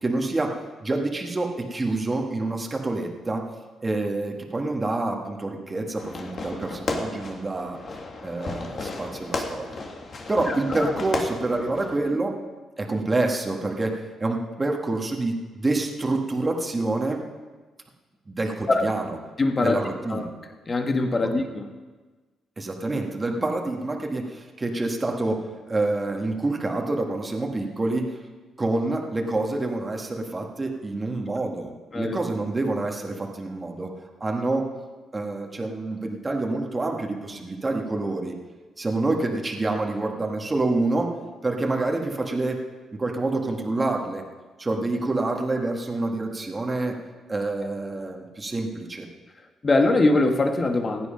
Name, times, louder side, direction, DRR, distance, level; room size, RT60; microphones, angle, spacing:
voice 1, 0.0-3.5 3.8-7.8 8.2-9.8 10.3-12.4 12.8-17.2 18.3-19.2 19.6-20.3 21.2-21.3 22.6-28.2 28.6-33.9 34.2-34.7 35.1-38.3 38.8-41.1 41.4-42.6 42.9-44.2 44.6-47.0 47.3-49.1, right 2 dB, 25° right, 1 dB, 1.7 m, -27 dB
Fireworks, 6.0-12.0, left 3 dB, 50° left, 2.1 m, -34 dB
voice 2, 10.5-10.9 18.7-18.9 19.4-19.8 20.1-20.3 20.7-21.6 31.9-32.2 49.6-51.1, left 2 dB, 30° left, 5 dB, 1.7 m, -22 dB
16.0 x 9.6 x 5.2 m, 1.3 s
cardioid pair, 90°, 0 cm